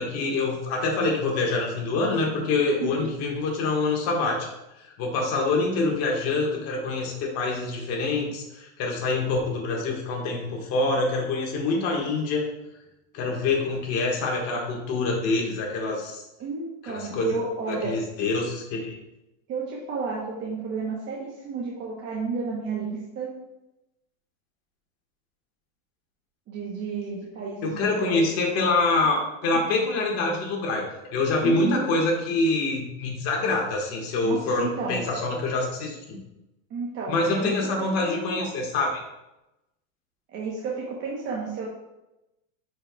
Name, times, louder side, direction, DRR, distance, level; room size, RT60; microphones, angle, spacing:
voice 1, 0.0-4.5 5.0-12.5 13.1-16.2 16.8-17.4 17.7-19.0 27.6-30.8 31.1-36.2 37.1-38.9, left 3 dB, 35° left, 0 dB, 1.7 m, -25 dB
voice 2, 2.6-3.1 16.4-17.9 19.5-23.3 26.5-27.7 28.0-28.2 31.4-31.9 34.2-35.0 36.7-37.5 38.0-38.4 40.3-41.7, right 4 dB, 25° right, -4 dB, 1.1 m, -32 dB
9.8 x 5.1 x 2.4 m, 0.94 s
supercardioid pair, 155°, 42 cm